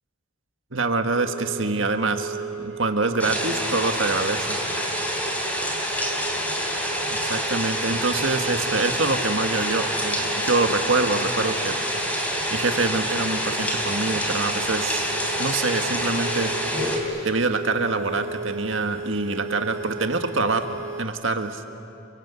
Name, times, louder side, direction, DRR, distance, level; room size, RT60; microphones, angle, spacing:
voice 1, 0.7-4.6 7.1-11.8 12.5-16.5 17.2-21.6, right 3 dB, 70° right, 6 dB, 1.8 m, -25 dB
sound 1, 1.1-21.0, right 4 dB, 90° right, 2.5 m, -36 dB
sound 2, 3.2-17.0, equal, 5° left, 3.4 m, -27 dB
30.0 x 24.0 x 8.3 m, 3.0 s
head